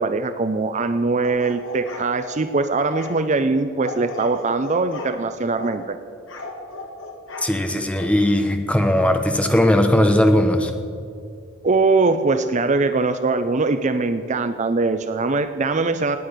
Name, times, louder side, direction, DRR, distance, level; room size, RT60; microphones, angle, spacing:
voice 1, 0.0-6.0 11.6-16.2, right 3 dB, 35° right, 10 dB, 0.5 m, -21 dB
sound 1, 1.2-2.4 2.9-3.1 3.8-5.2 5.6-5.8 6.3-7.5 8.0-8.1, left 2 dB, 65° left, 2.2 m, -36 dB
voice 2, 7.4-10.7, left 1 dB, 5° left, 5 dB, 1.1 m, -18 dB
18.0 x 9.4 x 6.6 m, 2.4 s
head